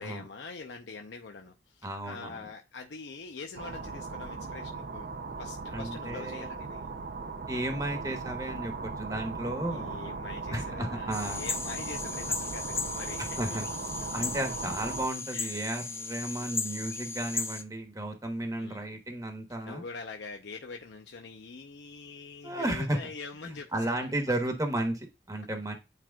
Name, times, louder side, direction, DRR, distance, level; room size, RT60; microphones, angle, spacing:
voice 1, 0.0-6.9 9.7-13.6 13.9-14.2 15.3-15.6 16.3-16.5 18.6-18.9 19.6-23.9, left 4 dB, 85° left, 0.7 m, -44 dB
voice 2, 1.8-2.4 5.7-6.5 7.5-10.0 10.5-11.5 13.4-13.6 14.1-19.8 22.4-23.1 23.7-25.7, right 1 dB, 20° right, 1.2 m, -33 dB
sound 1, 3.6-15.1, right 4 dB, 55° right, 0.6 m, -38 dB
sound 2, 11.1-17.6, left 4 dB, 15° left, 0.5 m, -36 dB
9.6 x 4.5 x 2.4 m
head